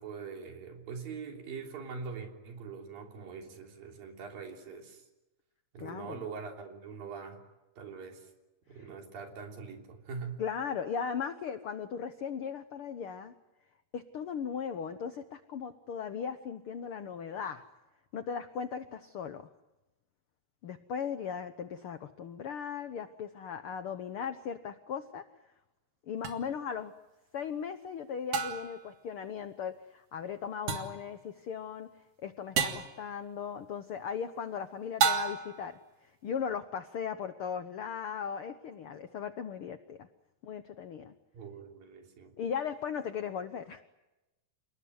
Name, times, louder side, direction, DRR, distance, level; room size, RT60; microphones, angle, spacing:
voice 1, 0.0-5.0 5.7-7.4 7.8-8.3 8.7-10.4 41.3-42.4, right 5 dB, 80° right, 2 dB, 5.1 m, -43 dB
voice 2, 5.8-6.2 8.8-8.9 10.4-13.3 13.9-17.6 18.1-19.5 20.6-25.2 26.1-26.9 27.3-31.9 32.2-35.8 36.2-40.1 40.4-41.1 42.4-43.8, left 7 dB, 90° left, 10 dB, 1.2 m, -37 dB
sound 1, 26.2-26.4 28.3-28.8 30.7-31.0 32.6-32.9 35.0-35.6, right 6 dB, 60° right, 3.4 m, -30 dB
29.0 x 19.5 x 9.5 m, 1.0 s
omnidirectional pair, 4.0 m